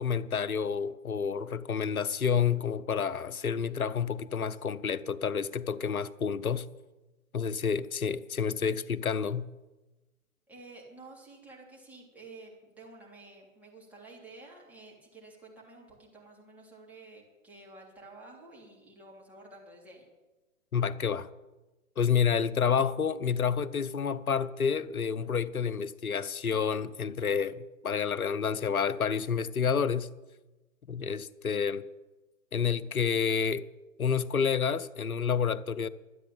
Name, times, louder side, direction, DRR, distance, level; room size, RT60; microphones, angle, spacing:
voice 1, 0.0-6.7 7.3-9.5 20.7-21.3 22.0-30.1 30.9-31.8 32.5-33.6 34.0-35.9, left 6 dB, 80° left, 0.8 m, -29 dB
voice 2, 10.5-20.1, right 2 dB, 5° right, 3.4 m, -51 dB
13.0 x 8.8 x 8.8 m
figure-of-eight pair, 125°, 42 cm